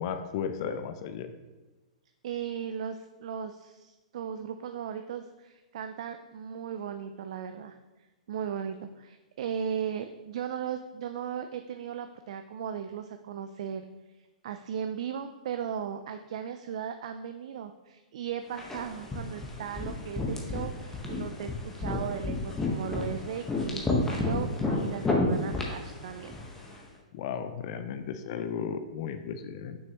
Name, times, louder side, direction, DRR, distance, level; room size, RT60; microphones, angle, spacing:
voice 1, 0.0-1.3 27.1-29.8, left 7 dB, 50° left, 9 dB, 0.5 m, -34 dB
voice 2, 2.2-7.8 8.3-13.8 14.4-26.3, right 8 dB, 60° right, 8 dB, 0.4 m, -37 dB
sound 1, 18.6-26.8, left 2 dB, 10° left, 1.1 m, -31 dB
6.3 x 5.9 x 2.9 m, 1.1 s
hypercardioid pair, 115°, 4 cm